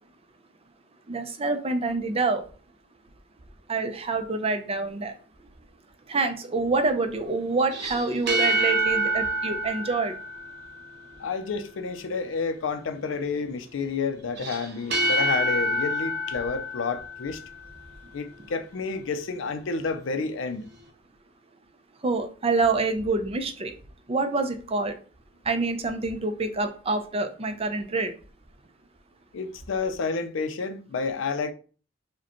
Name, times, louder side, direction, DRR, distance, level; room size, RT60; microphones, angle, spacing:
voice 1, 1.1-2.4 3.7-5.1 6.1-10.1 22.0-23.7 24.1-24.9 25.5-28.1, right 3 dB, 30° right, 0.5 m, -26 dB
sound 1, 7.6-11.1 14.4-17.9, right 1 dB, 60° right, 0.8 m, -27 dB
voice 2, 11.2-17.4 18.1-20.7 29.3-31.5, left 4 dB, 75° left, 0.5 m, -30 dB
4.8 x 2.2 x 2.9 m
head